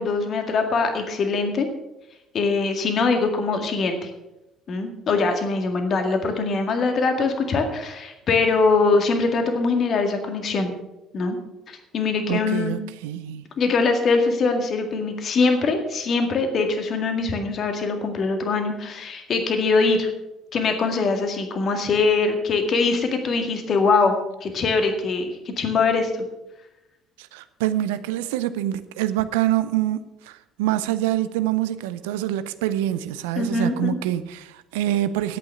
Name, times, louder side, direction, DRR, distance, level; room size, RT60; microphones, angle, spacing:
voice 1, 0.0-1.7 2.3-4.1 4.7-10.7 11.1-11.4 11.7-12.8 13.6-20.1 20.5-25.3 25.6-26.2 33.4-34.0, left 4 dB, 50° left, 2.0 m, -22 dB
voice 2, 12.3-13.5 27.2-35.4, right 13 dB, 75° right, 0.6 m, -25 dB
11.0 x 8.5 x 6.9 m
hypercardioid pair, 55°, 0 cm